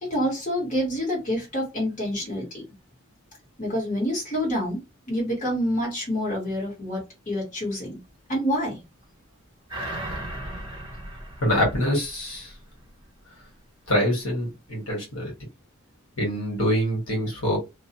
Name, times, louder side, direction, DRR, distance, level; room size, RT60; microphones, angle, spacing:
voice 1, 0.0-2.6 3.6-4.8 5.1-8.0 8.3-8.8, equal, 40° left, 1.5 m, -27 dB
sound 1, 9.7-12.6 13.0-13.1, right 1 dB, 20° right, 0.9 m, -36 dB
voice 2, 11.4-12.5 13.9-15.3 16.2-17.6, equal, 85° left, 1.5 m, -25 dB
2.6 x 2.3 x 2.9 m
head